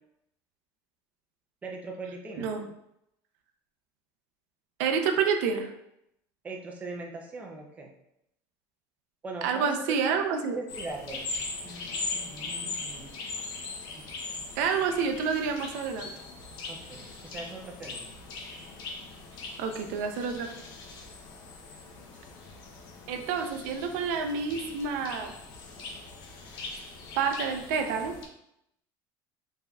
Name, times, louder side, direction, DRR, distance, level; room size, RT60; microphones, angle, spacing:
voice 1, 1.6-2.5 6.4-7.9 9.2-10.0 10.5-13.1 13.9-14.0 16.7-18.1, right 3 dB, 15° right, 0 dB, 0.5 m, -41 dB
voice 2, 2.4-2.7 4.8-5.7 9.4-10.6 14.6-16.1 19.6-20.5 23.1-25.3 27.2-28.2, right 6 dB, 85° right, 5 dB, 0.5 m, -28 dB
sound 1, 10.7-28.3, left 3 dB, 50° left, 0.7 m, -40 dB
4.1 x 3.5 x 2.3 m, 0.79 s
cardioid pair, 165°, 9 cm